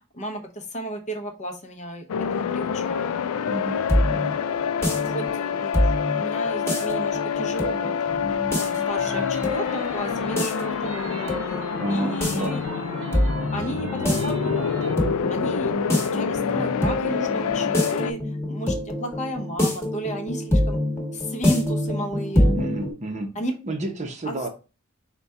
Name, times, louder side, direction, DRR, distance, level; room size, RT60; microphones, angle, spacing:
voice 1, 0.1-2.0 2.3-3.2 5.0-8.2 8.6-12.6 13.5-15.0 15.3-18.2 18.5-20.8 21.1-22.6 23.4-23.5 24.3-24.4, right 1 dB, 35° left, 0.7 m, -33 dB
sound 1, 2.1-18.1, left 7 dB, 90° left, 0.3 m, -27 dB
sound 2, 3.5-22.9, left 1 dB, 15° left, 1.1 m, -26 dB
voice 2, 3.5-4.4 11.7-12.6 22.5-23.3 23.6-24.5, right 2 dB, 35° right, 0.6 m, -31 dB
sound 3, 8.5-14.9, right 3 dB, 65° right, 0.7 m, -40 dB
4.0 x 2.2 x 4.6 m
head